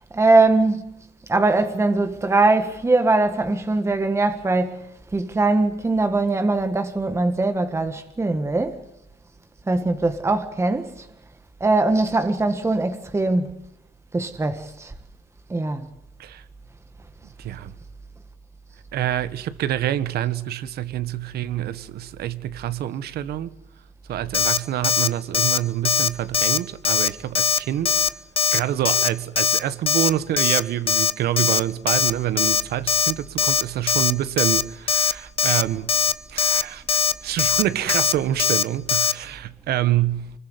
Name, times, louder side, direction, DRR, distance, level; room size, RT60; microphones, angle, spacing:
voice 1, 0.1-1.0 1.3-4.8 5.1-8.8 9.7-11.1 11.6-13.6 14.1-14.9 15.5-15.9, right 2 dB, 15° right, 1.6 m, -21 dB
voice 2, 17.4-17.7 18.9-23.5 24.1-27.9 28.5-36.0 36.3-40.3, right 12 dB, 70° right, 1.5 m, -26 dB
Alarm, 24.3-24.6 24.8-25.1 25.3-25.6 25.9-26.1 26.3-26.6 26.8-27.1 27.4-27.6 27.9-28.1 28.4-28.6 28.9-29.1 29.4-29.6 29.9-30.1 30.4-30.6 30.9-31.1 31.4-31.6 31.9-32.1 32.4-32.6 32.9-33.1 33.4-33.6 33.9-34.1 34.4-34.6 34.9-35.1 35.4-35.6 35.9-36.1 36.4-36.6 36.9-37.1 37.4-37.6 37.9-38.1 38.4-38.6 38.9-39.1, left 7 dB, 35° left, 1.0 m, -20 dB
25.0 x 21.5 x 9.4 m
cardioid pair, 110°, 17 cm